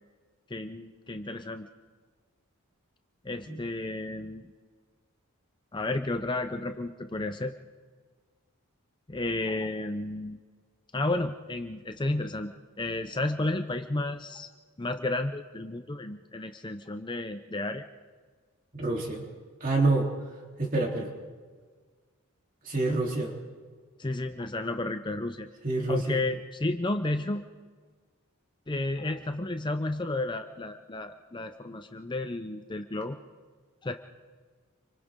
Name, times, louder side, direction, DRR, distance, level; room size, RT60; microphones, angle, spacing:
voice 1, 0.5-1.7 3.2-4.5 5.7-7.5 9.1-10.4 10.9-14.5 14.8-17.9 24.0-25.5 25.9-27.4 28.7-33.2 33.8-33.9, left 2 dB, 20° left, 7 dB, 0.6 m, -32 dB
voice 2, 18.8-19.2 19.6-20.1 20.6-21.1 22.7-23.3 25.6-26.2, right 2 dB, 40° right, -1 dB, 3.5 m, -27 dB
29.5 x 25.0 x 3.7 m, 1.5 s
head